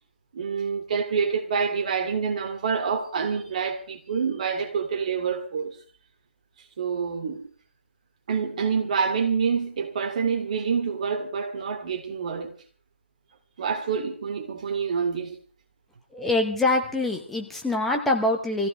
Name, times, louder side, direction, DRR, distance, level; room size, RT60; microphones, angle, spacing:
voice 1, 0.3-5.8 6.8-7.5 8.3-12.5 13.6-15.4, right 6 dB, 35° right, 2.7 m, -27 dB
voice 2, 16.1-18.7, left 2 dB, 5° left, 1.1 m, -24 dB
26.0 x 15.5 x 3.3 m
figure-of-eight pair, 150°, 6 cm